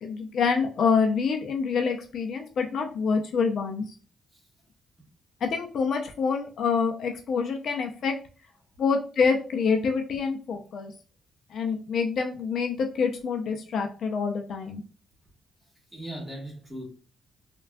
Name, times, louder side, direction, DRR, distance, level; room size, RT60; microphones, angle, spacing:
voice 1, 0.0-3.8 5.4-8.2 8.8-10.9 11.5-14.8, left 5 dB, 65° left, 0.4 m, -26 dB
voice 2, 15.6-16.8, right 1 dB, 5° right, 1.2 m, -39 dB
3.3 x 2.2 x 2.3 m
cardioid pair, 120°, 0 cm